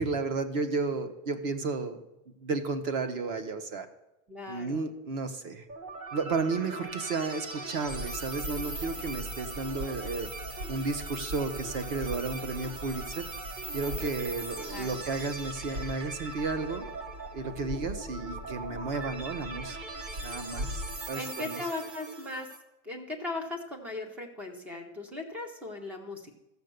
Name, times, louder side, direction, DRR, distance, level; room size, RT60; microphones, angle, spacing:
voice 1, 0.0-2.0 2.4-3.9 4.5-5.6 6.1-10.3 10.7-13.3 13.7-16.8 17.3-19.8 20.2-21.6, right 4 dB, 50° right, 10 dB, 1.2 m, -33 dB
voice 2, 4.3-4.9 14.7-15.0 21.1-22.5 22.8-26.4, left 2 dB, 5° right, 7 dB, 0.3 m, -38 dB
sound 1, 5.7-22.6, right 2 dB, 25° right, 0.9 m, -41 dB
sound 2, 7.8-21.1, equal, 80° right, 2.9 m, -42 dB
14.0 x 6.9 x 6.6 m, 0.93 s
supercardioid pair, 175°, 38 cm